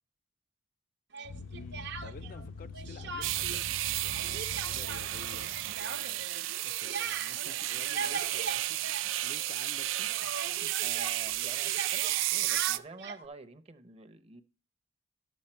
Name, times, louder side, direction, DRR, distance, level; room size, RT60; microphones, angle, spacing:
Speech, 1.1-2.4 2.7-3.6 3.9-9.6 9.8-13.3, right 5 dB, 65° right, 0.8 m, -40 dB
sound 1, 1.2-5.9, left 3 dB, 90° left, 0.6 m, -44 dB
voice 1, 1.5-6.2 6.6-10.3 10.6-10.7, left 4 dB, 45° left, 0.4 m, -51 dB
sound 2, 3.2-12.8, right 15 dB, 80° right, 0.4 m, -33 dB
voice 2, 10.8-14.4, right 3 dB, 30° right, 0.7 m, -48 dB
11.5 x 7.1 x 4.3 m
head